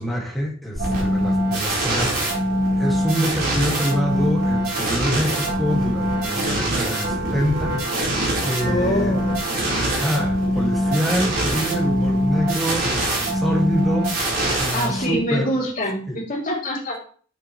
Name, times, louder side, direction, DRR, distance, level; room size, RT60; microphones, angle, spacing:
voice 1, 0.0-2.2 2.8-7.7 8.4-9.1 9.7-15.5 16.1-16.2, equal, ahead, -3 dB, 2.4 m, -26 dB
sound 1, 0.8-15.4, right 1 dB, 50° right, 4.4 m, -23 dB
voice 2, 8.7-9.3 14.7-17.0, equal, 40° left, -2 dB, 3.3 m, -25 dB
8.9 x 7.3 x 3.3 m, 0.44 s
head